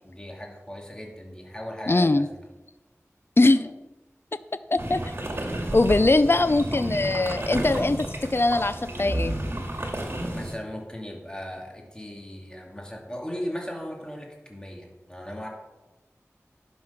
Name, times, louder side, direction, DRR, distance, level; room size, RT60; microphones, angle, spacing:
voice 1, 0.0-2.5 10.3-15.5, equal, 15° left, 0 dB, 2.4 m, -37 dB
voice 2, 1.9-2.3 3.4-3.8 4.7-5.1 5.7-9.3, left 2 dB, 45° left, 13 dB, 0.5 m, -21 dB
sound 1, 4.8-10.6, right 1 dB, 50° right, 2.0 m, -31 dB
11.0 x 6.3 x 5.9 m, 1.1 s
wide cardioid pair, 45°, 5 cm